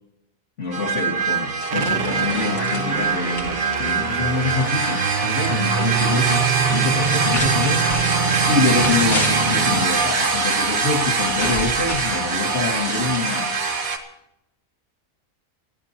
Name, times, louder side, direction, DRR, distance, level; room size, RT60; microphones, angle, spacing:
voice 1, 0.6-8.0 8.5-13.7, left 4 dB, 60° left, 2.7 m, -26 dB
sound 1, 0.7-14.0, right 4 dB, 85° right, 2.2 m, -23 dB
sound 2, 1.6-5.6 5.8-6.4 7.0-9.7 10.9-13.6, left 2 dB, 75° left, 2.9 m, -33 dB
sound 3, 1.7-9.9, right 5 dB, 40° right, 0.9 m, -26 dB
27.0 x 14.0 x 2.9 m
omnidirectional pair, 1.4 m